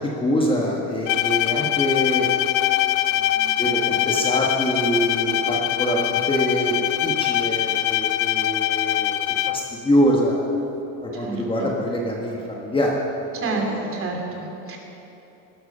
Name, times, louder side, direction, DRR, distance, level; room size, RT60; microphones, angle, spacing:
voice 1, 0.2-2.3 3.1-6.7 7.0-9.2 9.5-10.3 11.0-13.0 13.4-14.0, equal, 15° left, -2 dB, 1.5 m, -24 dB
Bowed string instrument, 1.1-9.8, left 14 dB, 55° left, 0.7 m, -23 dB
voice 2, 11.1-11.7 13.3-14.8, right 3 dB, 35° right, 1 dB, 2.7 m, -29 dB
18.5 x 13.0 x 5.6 m, 3.0 s
cardioid pair, 155°, 40 cm